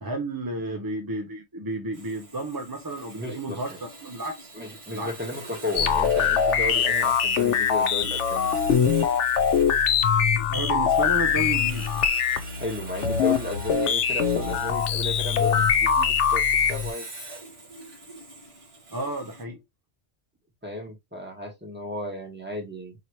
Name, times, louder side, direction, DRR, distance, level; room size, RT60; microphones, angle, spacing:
voice 1, 0.0-4.5 4.9-5.1 10.5-11.9 18.9-19.6, right 1 dB, 25° right, 0.5 m, -32 dB
Sawing, 1.9-19.4, right 2 dB, 60° right, 2.0 m, -42 dB
voice 2, 3.1-3.8 4.5-8.5 12.6-16.4 16.7-17.1 20.6-22.9, left 1 dB, 10° right, 1.3 m, -34 dB
sound 1, 5.8-16.9, left 7 dB, 90° left, 1.0 m, -23 dB
4.9 x 2.9 x 3.0 m
omnidirectional pair, 1.2 m